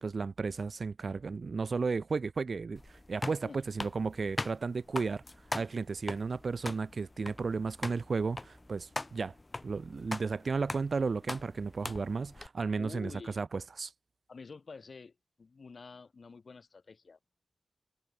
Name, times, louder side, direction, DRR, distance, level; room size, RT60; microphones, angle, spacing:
voice 1, 0.0-5.2 5.5-9.3 9.6-13.1 13.4-13.9, right 4 dB, 75° right, 1.3 m, -34 dB
sound 1, 2.8-12.5, left 2 dB, 35° left, 2.8 m, -41 dB
voice 2, 12.7-13.4 14.3-15.1 15.4-17.2, left 4 dB, 75° left, 7.8 m, -48 dB
wide cardioid pair, 60°, 0 cm